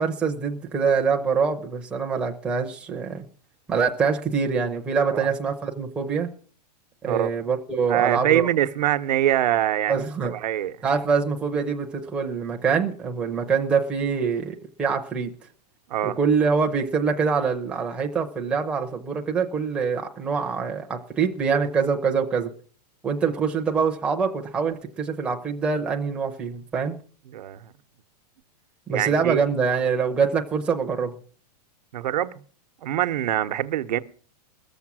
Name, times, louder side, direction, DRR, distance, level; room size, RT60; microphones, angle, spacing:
voice 1, 0.0-3.2 3.7-6.3 7.0-8.5 9.9-10.3 10.8-15.3 16.0-22.5 23.0-27.0 28.9-31.1, right 5 dB, 5° right, 0.5 m, -24 dB
voice 2, 7.9-10.7 15.9-16.2 27.3-27.7 28.9-29.4 31.9-32.3 32.8-34.0, right 12 dB, 85° right, 0.8 m, -24 dB
19.5 x 7.1 x 6.0 m
supercardioid pair, 175°, 21 cm